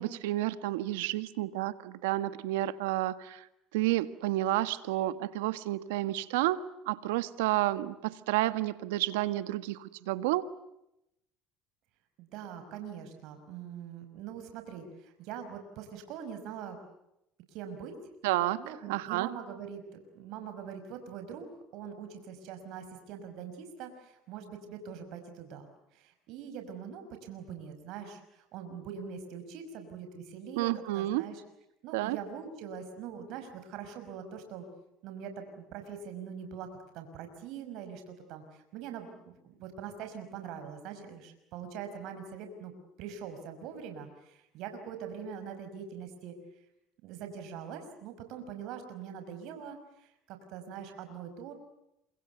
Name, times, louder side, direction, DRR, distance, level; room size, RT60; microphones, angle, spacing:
voice 1, 0.0-3.4 3.7-10.5 18.2-19.3 30.5-31.3 31.9-32.2, right 16 dB, 90° right, 13 dB, 1.5 m, -30 dB
voice 2, 12.2-16.8 17.5-18.0 18.6-21.5 21.7-31.4 31.8-34.7 35.0-36.7 36.9-46.4 47.0-51.5, right 7 dB, 70° right, 7 dB, 5.5 m, -43 dB
28.5 x 26.0 x 8.1 m, 0.84 s
supercardioid pair, 85°, 0 cm